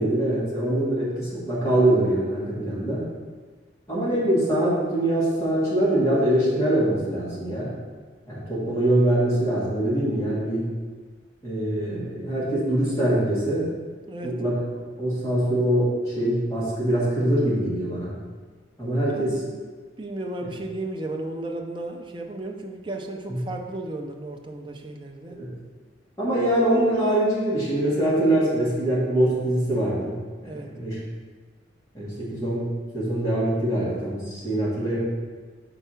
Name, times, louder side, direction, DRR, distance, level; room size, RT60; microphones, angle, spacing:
voice 1, 0.0-3.0 3.9-7.7 8.3-10.6 11.4-13.7 14.2-14.6 15.0-15.9 16.2-18.1 18.8-19.4 23.3-23.4 25.4-25.5 26.2-30.1 30.4-30.5 30.7-30.9 31.9-32.7 32.9-35.0, right 1 dB, 15° left, -9 dB, 1.7 m, -23 dB
voice 2, 19.1-19.6 20.0-25.4 30.5-30.7, right 2 dB, 25° right, 2 dB, 0.5 m, -34 dB
4.6 x 4.0 x 5.6 m, 1.4 s
head